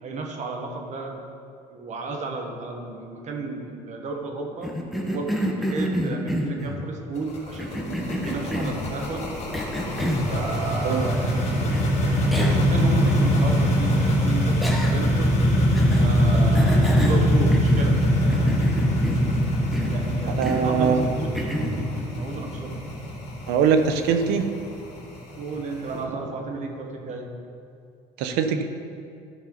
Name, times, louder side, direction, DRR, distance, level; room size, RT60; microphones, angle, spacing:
voice 1, 0.0-1.2 1.7-9.3 10.3-11.7 12.0-15.4 16.0-18.6 19.9-22.8 25.4-27.3, right 3 dB, 45° right, 2 dB, 1.5 m, -33 dB
Cough, 4.6-6.8 7.6-8.9 9.5-10.3 11.7-11.8 12.3-12.7 13.0-13.1 14.6-15.2 15.7-16.1 16.5-18.0 18.3-19.4 19.7-20.0 20.4-20.7 21.3-21.8, equal, ahead, 1.2 m, -29 dB
sound 1, 7.2-25.9, equal, 40° left, 2.2 m, -22 dB
voice 2, 20.4-21.0 23.5-24.5 28.2-28.6, right 6 dB, 85° right, 8 dB, 0.8 m, -22 dB
13.0 x 5.6 x 4.0 m, 2.4 s
cardioid pair, 105°, 16 cm